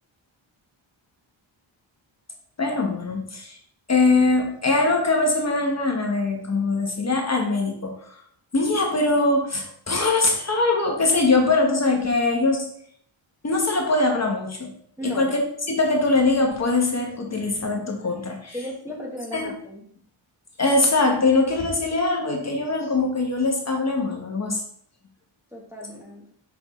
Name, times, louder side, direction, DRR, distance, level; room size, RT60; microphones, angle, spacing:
voice 1, 2.6-3.6 3.9-8.2 8.5-12.7 13.4-14.7 15.0-15.4 15.7-18.5 19.3-19.5 20.6-24.6, left 3 dB, 30° left, 1 dB, 1.1 m, -22 dB
voice 2, 15.0-15.4 18.5-19.9 25.5-26.3, left 1 dB, 5° right, -3 dB, 1.1 m, -35 dB
5.9 x 5.8 x 3.1 m, 0.65 s
wide cardioid pair, 140°, 49 cm